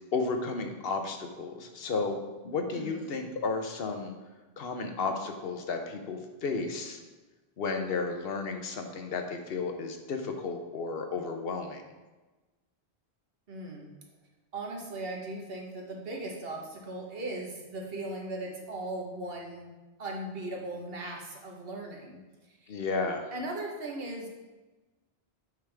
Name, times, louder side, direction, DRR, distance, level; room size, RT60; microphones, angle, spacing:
voice 1, 0.1-2.2 2.4-4.1 4.6-7.0 7.6-11.8 22.7-23.3, left 4 dB, 65° left, 5 dB, 1.0 m, -33 dB
voice 2, 2.7-3.1 13.5-13.9 14.5-19.7 20.0-22.2 22.6-22.7 23.3-24.3, right 2 dB, 65° right, 0 dB, 1.4 m, -38 dB
8.1 x 5.3 x 3.4 m, 1.2 s
omnidirectional pair, 1.1 m